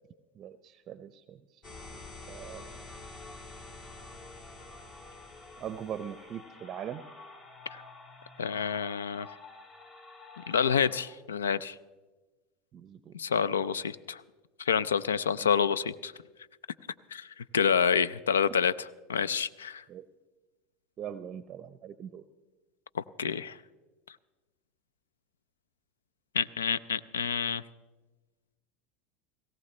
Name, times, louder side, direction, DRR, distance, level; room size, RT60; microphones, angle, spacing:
voice 1, 0.4-1.4 2.3-2.9 5.6-7.0 12.7-13.1 13.6-13.7 15.4-15.5 19.9-20.1 21.0-22.2, right 9 dB, 40° right, 14 dB, 0.5 m, -41 dB
sound 1, 1.6-11.0, left 3 dB, 45° left, 2.6 m, -48 dB
voice 2, 8.4-9.3 10.5-11.8 13.1-14.2 14.6-16.1 17.1-17.3 17.5-19.8 22.9-23.6 26.3-27.6, left 7 dB, 90° left, 19 dB, 0.4 m, -28 dB
18.0 x 16.5 x 3.2 m, 1.2 s
hypercardioid pair, 85°, 0 cm